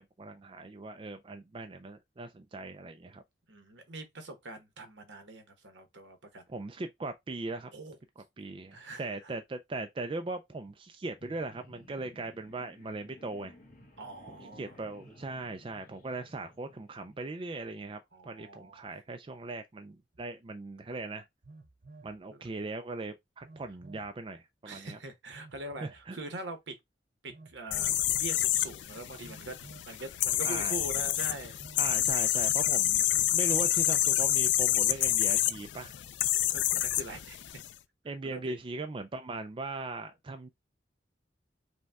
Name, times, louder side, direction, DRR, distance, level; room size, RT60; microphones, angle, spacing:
voice 1, 0.0-3.2 6.5-7.7 8.2-13.5 14.3-21.3 22.0-25.0 25.8-26.2 30.4-30.8 31.8-33.0 33.3-35.9 38.0-40.5, right 2 dB, 25° right, 0.4 m, -39 dB
voice 2, 3.5-6.4 7.7-8.0 8.7-9.3 14.0-14.8 18.1-18.8 22.3-22.4 24.6-26.7 27.2-29.5 29.9-31.6 32.3-32.4 36.5-37.4 38.2-38.6, right 2 dB, 75° right, 1.1 m, -43 dB
sound 1, 11.1-17.3, left 1 dB, 45° left, 1.2 m, -56 dB
Telephone, 20.1-20.2 21.4-22.2 23.4-24.1 25.3-26.0 27.3-28.0 29.2-29.9 31.2-31.9 33.1-33.8, right 3 dB, 45° right, 0.7 m, -53 dB
sound 2, 27.7-37.7, left 13 dB, 70° left, 0.4 m, -28 dB
5.2 x 2.3 x 3.4 m
head